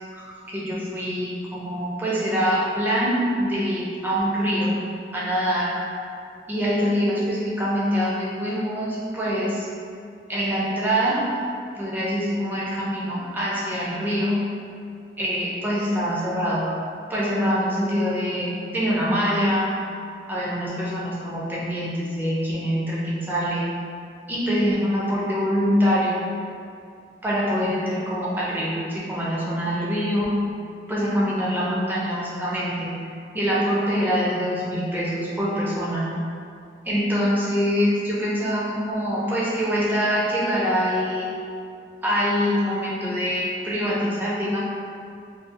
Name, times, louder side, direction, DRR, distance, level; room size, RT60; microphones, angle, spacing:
voice 1, 0.1-4.8 5.1-5.7 6.5-9.7 10.3-11.3 11.7-14.4 15.2-16.7 17.1-19.7 20.3-23.6 24.3-26.2 27.2-30.3 30.9-32.9 33.3-36.1 36.9-41.3 42.0-44.6, equal, 10° right, -7 dB, 0.4 m, -24 dB
2.5 x 2.3 x 2.5 m, 2.4 s
head